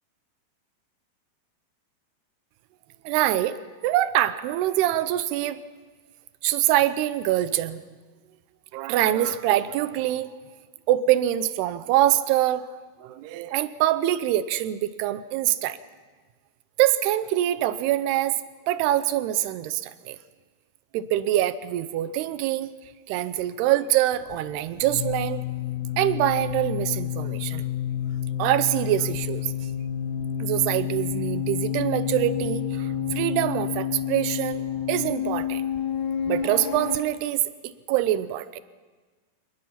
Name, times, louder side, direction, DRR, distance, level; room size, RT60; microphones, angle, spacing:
voice 1, 3.0-3.6 3.8-5.6 6.4-7.8 8.7-10.4 10.9-12.7 13.0-15.8 16.8-20.2 20.9-22.7 23.1-25.4 26.0-27.7 28.4-29.5 30.4-35.6 36.3-38.5, right 13 dB, 80° right, 14 dB, 2.7 m, -24 dB
sound 1, 24.1-37.0, left 9 dB, 90° left, 3.1 m, -29 dB
25.5 x 19.5 x 5.8 m, 1.4 s
omnidirectional pair, 4.8 m